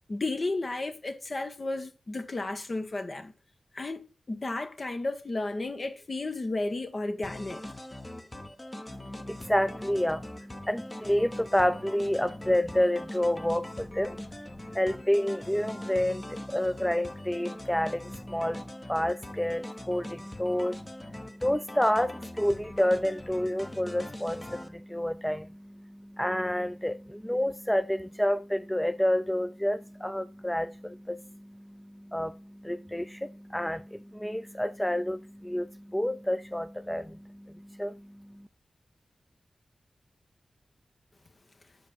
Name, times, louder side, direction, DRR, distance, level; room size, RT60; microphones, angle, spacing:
voice 1, 0.1-3.3 3.7-7.6, left 2 dB, 50° left, 1.2 m, -33 dB
sound 1, 7.2-24.7, left 1 dB, 30° left, 1.1 m, -42 dB
voice 2, 8.9-38.5, left 1 dB, 10° left, 0.4 m, -29 dB
5.9 x 5.0 x 6.7 m
cardioid pair, 45°, 0 cm